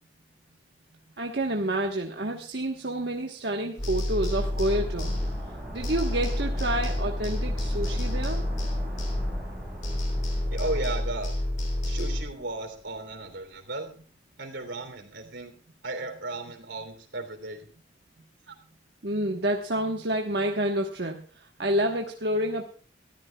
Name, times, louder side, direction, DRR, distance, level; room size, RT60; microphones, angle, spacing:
voice 1, 1.2-5.1 5.7-8.5 19.0-21.2 21.6-22.6, right 1 dB, 65° right, 2 dB, 1.2 m, -28 dB
sound 1, 3.8-9.6 9.8-12.2, left 1 dB, 40° left, 3.3 m, -29 dB
sound 2, 4.3-13.0 13.2-13.3, equal, 5° right, 5.8 m, -40 dB
voice 2, 10.5-11.3 11.8-13.9 14.4-15.5 15.8-17.6 18.5-18.6, right 2 dB, 80° right, 7 dB, 3.2 m, -35 dB
23.0 x 14.0 x 2.3 m, 0.40 s
head